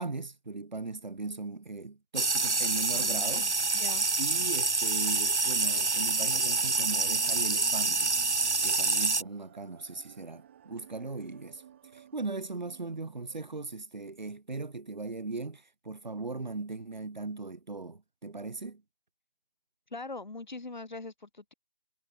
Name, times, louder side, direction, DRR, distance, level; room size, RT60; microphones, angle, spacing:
voice 1, 0.0-3.5 4.2-8.1 8.6-11.6 11.9-18.8, right 3 dB, 35° right, 7.5 m, -38 dB
sound 1, 2.2-9.2, right 3 dB, 60° right, 1.0 m, -27 dB
voice 2, 2.9-4.1 19.9-21.5, left 3 dB, 35° left, 6.8 m, -42 dB
sound 2, 5.4-13.4, right 10 dB, 10° right, 4.3 m, -55 dB
figure-of-eight pair, 165°, 39 cm